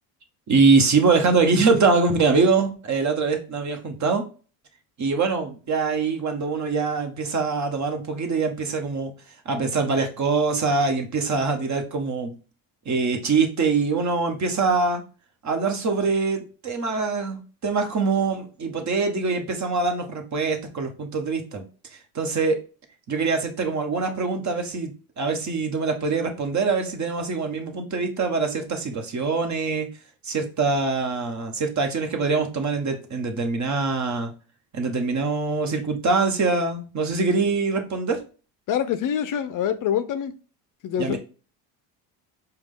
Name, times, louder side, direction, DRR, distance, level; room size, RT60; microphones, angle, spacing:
voice 1, 0.5-4.2 5.0-9.1 9.4-12.3 12.8-15.0 15.4-21.6 21.9-22.6 23.1-29.9 30.2-34.3 34.7-38.2 41.0-41.2, right 4 dB, 40° right, 1.1 m, -23 dB
voice 2, 38.7-40.3 40.8-41.2, left 9 dB, 45° left, 0.4 m, -25 dB
4.8 x 2.3 x 3.6 m
supercardioid pair, 90°, 45 cm